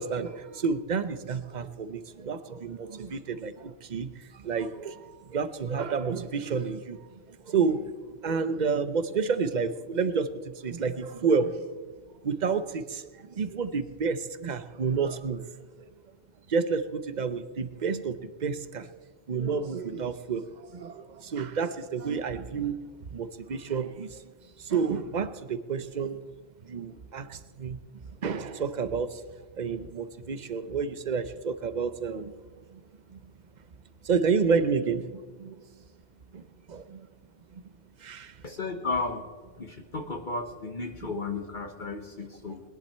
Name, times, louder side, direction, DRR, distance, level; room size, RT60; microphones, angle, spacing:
voice 1, 0.0-7.0 7.4-11.6 12.2-15.4 16.5-18.9 19.3-22.8 23.1-24.2 24.6-26.2 26.6-27.8 28.2-29.2 29.6-32.3 32.7-32.8 33.1-33.3 34.0-35.6 36.3-36.4 36.7-37.1 37.5-37.7 38.0-38.3 41.0-41.1, right 5 dB, 45° right, 13 dB, 0.8 m, -30 dB
voice 2, 38.4-39.2 39.6-42.6, left 3 dB, 45° left, 5 dB, 1.2 m, -34 dB
20.5 x 11.0 x 4.3 m, 1.5 s
omnidirectional pair, 1.1 m